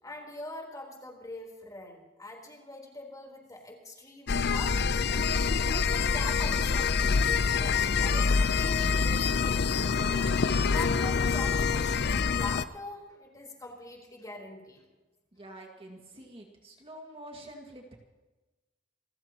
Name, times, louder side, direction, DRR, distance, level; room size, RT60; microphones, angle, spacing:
voice 1, 0.0-10.3 10.7-14.8, left 2 dB, 20° left, 0 dB, 3.8 m, -43 dB
sound 1, 4.3-12.6, left 5 dB, 60° left, 0.6 m, -26 dB
voice 2, 15.3-18.0, right 1 dB, 30° right, 0 dB, 2.0 m, -47 dB
28.5 x 15.0 x 3.0 m, 1.2 s
head